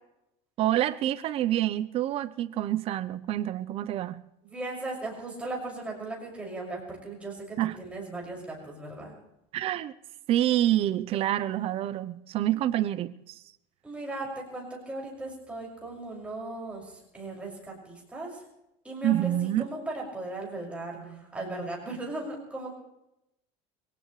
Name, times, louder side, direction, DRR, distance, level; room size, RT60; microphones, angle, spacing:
voice 1, 0.6-4.2 7.6-7.8 9.5-9.9 10.3-13.1 19.0-19.7, right 13 dB, 45° right, 14 dB, 0.8 m, -27 dB
voice 2, 4.4-9.1 12.5-12.6 13.8-18.4 18.8-22.8, right 2 dB, 10° right, -2 dB, 6.3 m, -37 dB
23.0 x 18.5 x 3.3 m, 0.87 s
cardioid pair, 145°, 14 cm